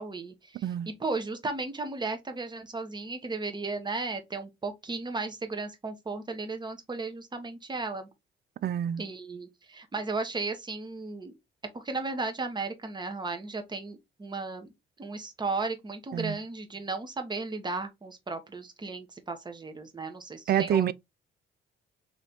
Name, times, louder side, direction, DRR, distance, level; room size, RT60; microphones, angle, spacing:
voice 1, 0.0-8.1 9.0-11.3 11.7-14.7 15.0-20.9, right 3 dB, 20° right, 1.1 m, -35 dB
voice 2, 8.6-9.0 16.1-16.4 20.5-20.9, right 10 dB, 55° right, 0.4 m, -27 dB
3.3 x 3.1 x 3.9 m
cardioid pair, 90°, 20 cm